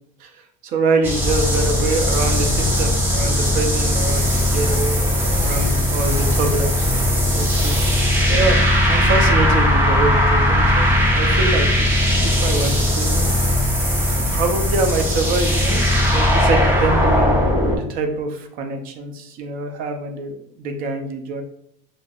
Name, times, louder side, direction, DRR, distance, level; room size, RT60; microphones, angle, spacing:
voice 1, 0.2-13.4 14.1-21.4, right 3 dB, 50° right, 5 dB, 0.6 m, -25 dB
sound 1, 1.0-17.8, left 1 dB, 10° right, 0.7 m, -18 dB
5.1 x 2.1 x 2.4 m, 0.72 s
cardioid pair, 135°, 18 cm